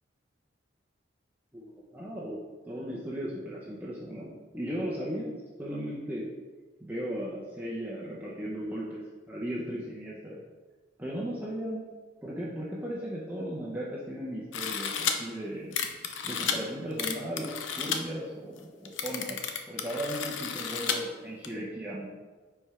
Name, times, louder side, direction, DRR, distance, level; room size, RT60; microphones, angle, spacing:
voice 1, 1.5-6.3 6.8-10.4 11.0-11.8 12.2-15.8 16.2-19.4 19.7-22.1, equal, 10° right, -6 dB, 0.7 m, -36 dB
sound 1, 14.5-15.1 15.7-16.6 17.0-18.0 18.6-18.7 18.8-21.0 21.4-21.5, left 7 dB, 90° left, 0.6 m, -32 dB
5.2 x 4.4 x 4.8 m, 1.3 s
head